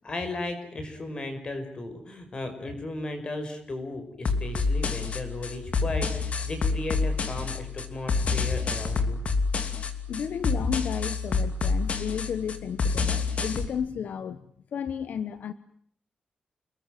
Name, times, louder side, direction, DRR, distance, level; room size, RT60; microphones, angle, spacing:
voice 1, 0.0-9.2, left 2 dB, 35° left, 5.6 m, -35 dB
sound 1, 4.2-13.7, left 4 dB, 50° left, 2.8 m, -28 dB
voice 2, 10.1-14.5 14.7-15.5, left 7 dB, 75° left, 1.2 m, -33 dB
29.5 x 21.0 x 9.2 m
wide cardioid pair, 180°, 3 cm